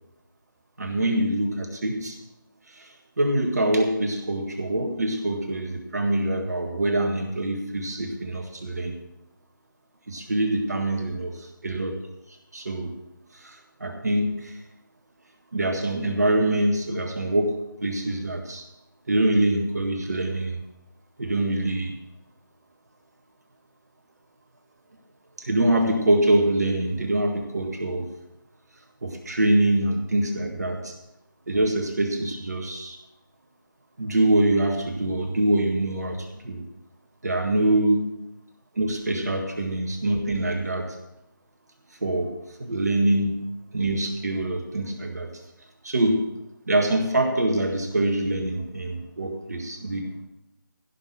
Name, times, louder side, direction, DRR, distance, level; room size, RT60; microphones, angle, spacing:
voice 1, 0.8-2.2 2.7-9.0 10.1-12.0 12.5-12.9 13.3-14.6 15.5-18.6 19.1-20.6 21.2-22.0 25.4-28.1 29.0-30.9 31.5-33.0 34.0-36.6 37.2-38.1 38.8-41.0 42.0-42.3 42.6-43.4 43.7-45.3 45.8-46.3 46.7-50.1, right 1 dB, 50° right, 3 dB, 1.8 m, -24 dB
16.0 x 6.1 x 7.4 m, 0.91 s
figure-of-eight pair, 160°, 11 cm